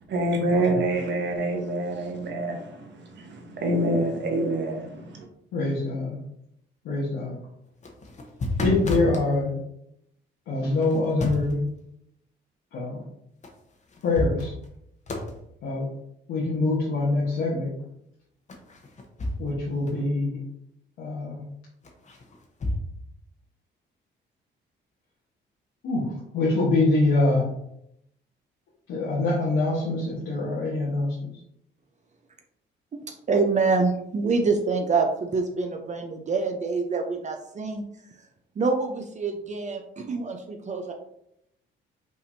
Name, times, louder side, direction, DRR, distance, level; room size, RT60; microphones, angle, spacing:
voice 1, 0.1-5.3, right 1 dB, 65° right, 2 dB, 1.2 m, -26 dB
voice 2, 5.5-6.2 6.8-7.4 8.6-9.6 10.5-11.6 12.7-13.0 14.0-14.5 15.6-15.9 16.3-17.7 19.4-20.4 21.0-21.4 25.8-27.5 28.9-31.2, left 2 dB, 85° left, -7 dB, 1.3 m, -24 dB
sound 1, 7.7-9.3 10.8-11.6 13.4-13.5 13.9-14.8 15.1-15.4 18.5-19.6 19.9-20.0 21.8-22.8, left 1 dB, 35° left, 0.9 m, -31 dB
voice 3, 33.3-37.8 38.6-40.9, right 4 dB, 35° right, 4 dB, 0.6 m, -26 dB
5.4 x 3.4 x 2.7 m, 0.77 s
cardioid pair, 90°, 20 cm